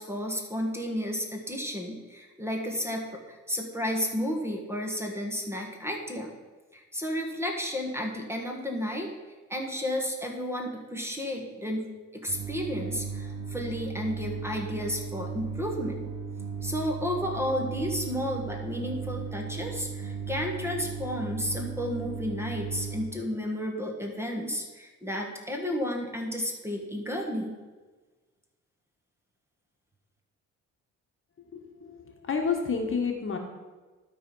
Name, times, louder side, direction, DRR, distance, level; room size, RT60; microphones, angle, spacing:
voice 1, 0.0-6.3 6.7-9.1 9.5-16.1 16.6-27.5, equal, 10° right, 1 dB, 1.6 m, -32 dB
sound 1, 12.3-23.1, right 5 dB, 75° right, 1.3 m, -36 dB
voice 2, 31.5-32.0 32.2-33.4, left 5 dB, 45° left, 2 dB, 1.5 m, -29 dB
12.5 x 4.2 x 5.5 m, 1.3 s
cardioid pair, 90°, 30 cm